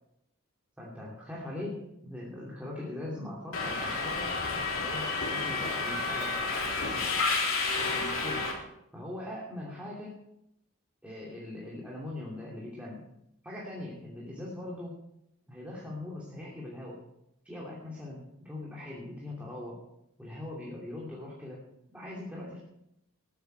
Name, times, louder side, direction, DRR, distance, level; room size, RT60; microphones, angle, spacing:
voice 1, 0.8-6.4 7.8-8.5 8.9-10.2 11.0-13.0 13.4-15.0 15.5-17.0 17.4-19.8 20.2-21.6 21.9-22.6, left 1 dB, 5° right, -4 dB, 2.7 m, -41 dB
Subway metro underground, 3.5-8.5, left 3 dB, 65° left, 3.6 m, -30 dB
20.0 x 9.4 x 4.6 m, 0.82 s
head